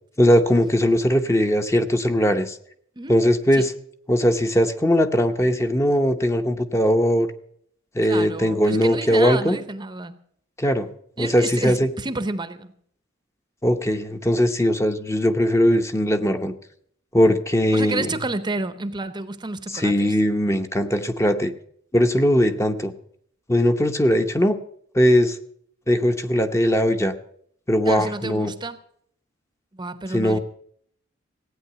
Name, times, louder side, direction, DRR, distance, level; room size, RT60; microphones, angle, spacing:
voice 1, 0.2-2.6 3.1-3.7 4.1-7.3 7.9-9.6 10.6-10.9 11.2-11.9 13.6-16.5 17.1-18.1 19.7-21.5 21.9-22.9 23.5-24.6 24.9-25.4 25.9-27.1 27.7-28.5 30.1-30.4, equal, 15° left, 7 dB, 0.8 m, -20 dB
voice 2, 8.0-10.2 11.2-12.7 17.7-20.1 27.9-28.8 29.7-30.4, right 2 dB, 20° right, 12 dB, 0.7 m, -30 dB
16.0 x 9.1 x 6.8 m, 0.65 s
head